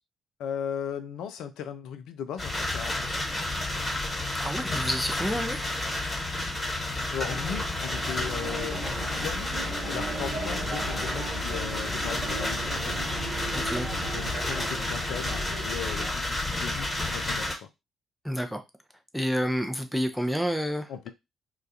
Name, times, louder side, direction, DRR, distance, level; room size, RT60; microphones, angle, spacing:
voice 1, 0.4-3.2 7.1-9.5 9.9-12.9 14.1-17.5 20.9-21.1, left 8 dB, 65° left, 0.3 m, -37 dB
sound 1, 2.4-17.5, left 2 dB, 25° left, 1.3 m, -31 dB
voice 2, 4.4-5.6 13.5-13.9 18.2-18.6 19.1-20.9, equal, ahead, 0.5 m, -29 dB
sound 2, 6.1-14.3, right 1 dB, 85° right, 0.3 m, -46 dB
sound 3, 7.3-16.1, right 3 dB, 55° right, 0.7 m, -38 dB
2.3 x 2.2 x 2.7 m
figure-of-eight pair, 40°, 0 cm